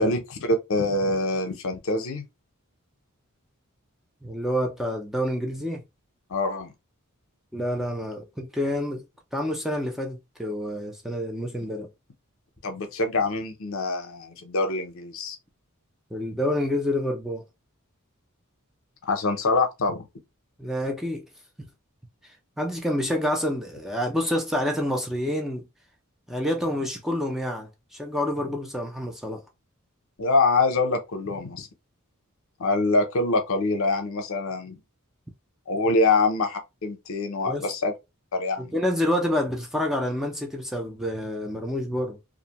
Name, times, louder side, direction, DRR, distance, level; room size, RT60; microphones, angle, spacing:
voice 1, 0.0-2.2 6.3-6.7 12.6-15.4 19.0-20.0 30.2-31.7 32.6-34.8 35.7-37.9 38.3-38.7, left 3 dB, 65° left, 0.6 m, -25 dB
voice 2, 4.2-5.8 7.5-9.0 9.3-11.9 16.1-17.4 20.6-21.3 21.6-21.7 22.6-25.7 26.3-29.4 37.5-37.7 38.6-42.2, left 1 dB, ahead, 0.3 m, -28 dB
2.5 x 2.1 x 2.8 m
head